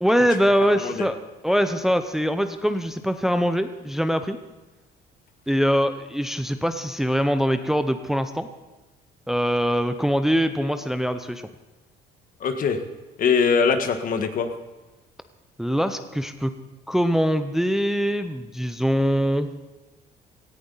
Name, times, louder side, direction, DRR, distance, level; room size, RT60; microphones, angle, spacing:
voice 1, 0.0-1.2 1.4-4.4 5.5-8.5 9.3-11.4 15.6-16.5 16.9-19.5, equal, ahead, 9 dB, 0.7 m, -23 dB
voice 2, 0.7-1.1 12.4-12.8 13.2-14.5, left 6 dB, 55° left, 7 dB, 1.5 m, -22 dB
17.5 x 14.0 x 4.0 m, 1.1 s
cardioid pair, 110°, 17 cm